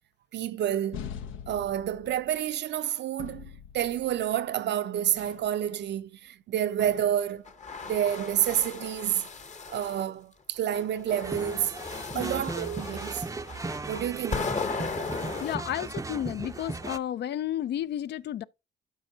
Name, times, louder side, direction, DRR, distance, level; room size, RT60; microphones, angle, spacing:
voice 1, 0.3-1.1 1.5-7.5 7.9-9.3 9.7-11.8 12.1-13.3 13.9-14.6, right 10 dB, 60° right, 0.5 m, -29 dB
sound 1, 0.9-2.6 3.2-4.4 5.1-5.5 6.8-7.3, left 8 dB, 85° left, 0.8 m, -43 dB
sound 2, 7.5-10.1 10.7-15.6, left 4 dB, 35° left, 0.9 m, -36 dB
sound 3, 11.2-17.0, right 3 dB, 15° right, 0.5 m, -37 dB
voice 2, 15.4-18.4, left 11 dB, 60° left, 0.4 m, -32 dB
12.0 x 5.1 x 2.7 m
cardioid pair, 90°, 20 cm